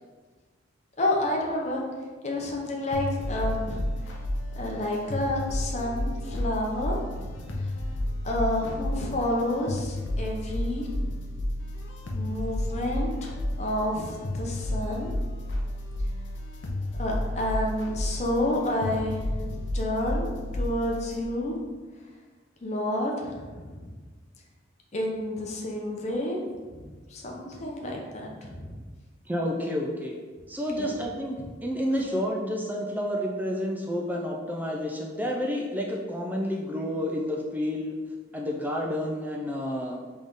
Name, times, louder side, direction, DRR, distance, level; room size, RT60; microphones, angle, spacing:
voice 1, 1.0-1.8 2.2-3.9 4.6-7.4 8.2-10.9 12.1-13.1 13.6-15.1 17.0-20.3 20.5-21.6 22.6-23.9 24.9-26.4 27.1-28.7 30.8-30.9, left 1 dB, 35° left, -1 dB, 0.7 m, -29 dB
sound 1, 2.9-21.2, left 1 dB, 70° left, 0.7 m, -32 dB
voice 2, 29.3-30.2 30.5-31.4 31.6-38.0 38.3-40.0, equal, 10° right, -1 dB, 0.3 m, -30 dB
3.9 x 3.5 x 3.6 m, 1.4 s
head